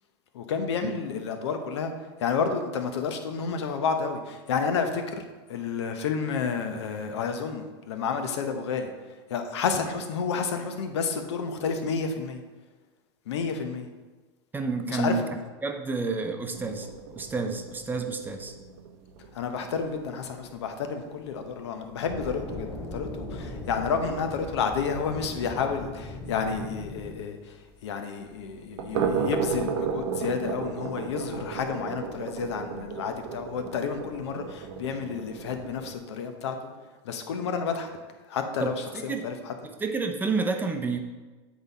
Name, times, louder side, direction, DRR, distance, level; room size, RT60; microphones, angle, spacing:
voice 1, 0.3-1.9 2.2-8.9 9.3-12.4 13.3-13.9 14.9-15.3 19.3-27.6 27.8-36.5 37.0-37.9 38.3-39.5, left 5 dB, 85° left, 6 dB, 0.9 m, -30 dB
voice 2, 14.5-15.1 15.6-16.9 17.2-18.5 38.6-39.3 39.8-41.0, right 4 dB, 15° right, 5 dB, 0.6 m, -29 dB
sound 1, 16.5-22.4 22.7-22.8 23.2-23.3 23.7-23.8 24.1-24.2 27.0-27.1 28.6-36.0, right 6 dB, 65° right, 0.8 m, -34 dB
sound 2, 22.1-27.2, left 1 dB, 30° left, 2.0 m, -38 dB
7.9 x 4.1 x 4.1 m, 1.3 s
supercardioid pair, 120°, 14 cm